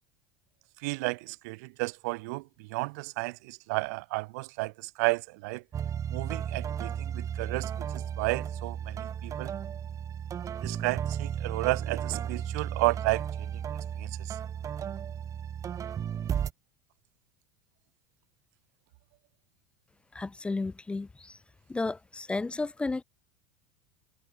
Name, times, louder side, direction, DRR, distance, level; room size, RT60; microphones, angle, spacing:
voice 1, 0.8-4.7 5.0-5.6 6.1-9.5 10.6-13.2 14.0-14.3, right 26 dB, 60° right, 0.4 m, -32 dB
sound 1, 5.7-16.5, right 9 dB, 30° right, 1.7 m, -34 dB
voice 2, 20.1-21.4 21.7-23.0, left 3 dB, 10° left, 0.3 m, -33 dB
figure-of-eight pair, 75°, 10 cm